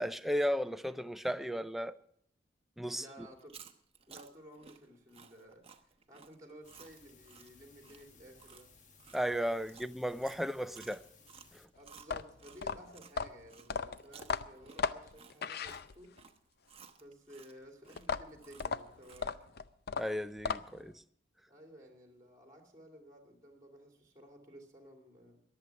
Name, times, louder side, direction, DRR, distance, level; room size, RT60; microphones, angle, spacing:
voice 1, 0.0-1.9 2.8-3.3 9.1-11.0 11.5-11.6 20.0-21.0, equal, ahead, 0.5 m, -35 dB
voice 2, 2.9-3.6 4.1-8.7 11.7-16.1 17.0-19.6 21.5-25.4, equal, 20° right, 2.5 m, -55 dB
Chewing mastication, 3.3-13.1 13.5-19.4, right 6 dB, 35° right, 1.0 m, -57 dB
sound 1, 6.6-11.7, left 4 dB, 45° left, 1.4 m, -61 dB
sound 2, 12.0-16.3 18.0-20.9, left 5 dB, 60° left, 0.6 m, -37 dB
22.0 x 7.9 x 5.9 m
head